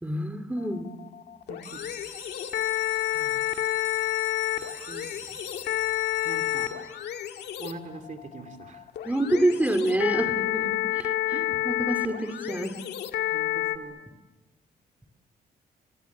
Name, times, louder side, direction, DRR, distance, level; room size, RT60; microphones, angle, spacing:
voice 1, 0.0-0.9 9.0-10.4 10.9-11.4 11.6-12.8, right 1 dB, 10° right, 10 dB, 2.8 m, -26 dB
sound 1, 0.6-13.8, left 15 dB, 85° left, 1.9 m, -30 dB
sound 2, 1.5-7.2 7.9-8.3 8.7-8.8 9.1-9.2 9.6-9.7, left 5 dB, 45° left, 4.1 m, -43 dB
voice 2, 1.5-1.8 3.1-3.4 4.9-5.1 6.2-6.9 7.6-8.8 10.2-10.8 11.3-11.6 13.3-14.0, right 3 dB, 50° right, 7 dB, 2.7 m, -41 dB
30.0 x 26.0 x 7.3 m, 1.1 s
cardioid pair, 100°, 17 cm